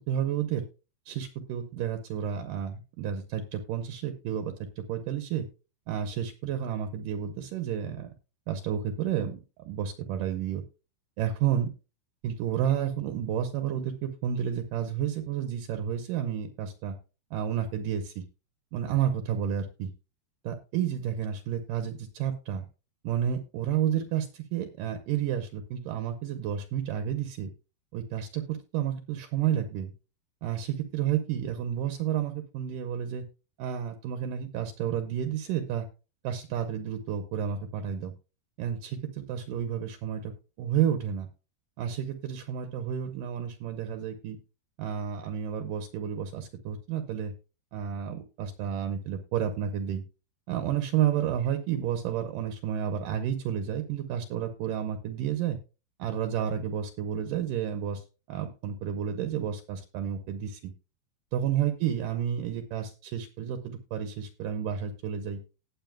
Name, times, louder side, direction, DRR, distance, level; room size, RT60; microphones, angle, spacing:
voice 1, 0.1-0.6 1.1-4.5 4.9-5.5 5.9-8.1 8.5-9.4 9.7-10.6 11.2-11.7 12.2-17.0 17.3-18.2 18.7-19.9 20.4-22.7 23.0-27.5 27.9-29.9 30.4-33.2 33.6-35.9 36.2-38.1 38.6-40.3 40.6-41.3 41.8-44.4 44.8-47.3 47.7-50.0 50.5-55.6 56.0-60.7 61.3-65.4, right 9 dB, 80° right, 7 dB, 2.0 m, -31 dB
18.5 x 7.1 x 2.3 m, 0.32 s
omnidirectional pair, 4.7 m